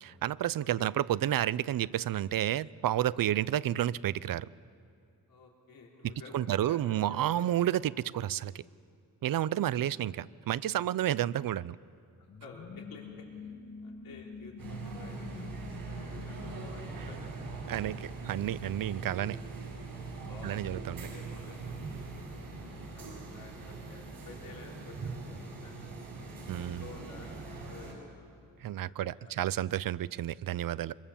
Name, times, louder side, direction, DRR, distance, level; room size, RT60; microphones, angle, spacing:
voice 1, 0.0-4.5 6.0-8.6 9.2-11.8 17.7-19.4 20.4-21.1 26.5-26.8 28.6-31.0, right 12 dB, 75° right, 19 dB, 0.6 m, -31 dB
voice 2, 0.6-0.9 3.1-3.3 5.3-7.7 12.2-13.5 13.8-17.7 18.8-19.5 20.3-25.9 26.5-27.3 27.7-28.2 28.8-29.4, left 3 dB, 80° left, -1 dB, 3.5 m, -52 dB
sound 1, 12.3-18.7, left 5 dB, 55° left, 2.0 m, -47 dB
sound 2, 14.6-27.9, right 3 dB, 90° right, 6.9 m, -42 dB
24.5 x 23.5 x 7.2 m, 2.4 s
wide cardioid pair, 120°, 34 cm